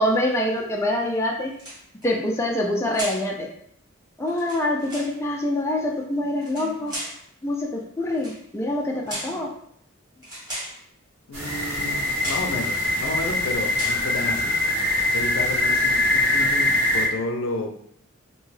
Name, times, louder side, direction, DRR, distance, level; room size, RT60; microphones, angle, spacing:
voice 1, 0.0-1.5 2.0-3.5 4.2-6.9 7.4-9.5, left 1 dB, 15° left, -1 dB, 0.3 m, -25 dB
sound 1, 1.5-2.1 2.9-3.3 4.3-5.1 6.4-7.2 8.1-8.4 9.1-9.4 10.2-10.8 11.7-11.9 12.2-12.5 13.1-13.4 13.7-14.1, right 1 dB, 20° right, 1.2 m, -35 dB
voice 2, 11.3-14.6 15.1-17.7, left 2 dB, 75° left, 4 dB, 0.4 m, -31 dB
sound 2, 11.3-17.1, left 2 dB, 80° right, 1.1 m, -23 dB
2.6 x 2.2 x 3.2 m, 0.67 s
head